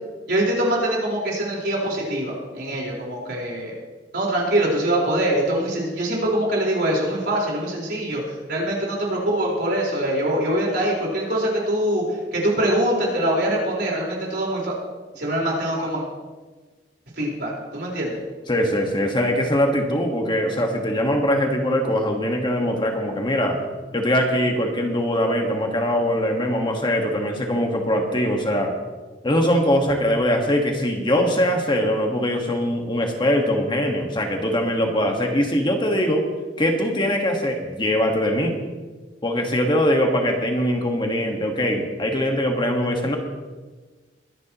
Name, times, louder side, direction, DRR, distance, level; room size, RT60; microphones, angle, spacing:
voice 1, 0.3-3.7 4.1-8.2 8.5-12.0 12.3-14.7 15.2-16.0 17.2-18.2, right 1 dB, 65° right, -3 dB, 4.4 m, -23 dB
voice 2, 18.5-23.6 23.9-28.7 29.2-36.3 36.6-38.5 39.2-43.2, equal, 25° left, 2 dB, 1.5 m, -22 dB
22.5 x 11.0 x 3.0 m, 1.3 s
head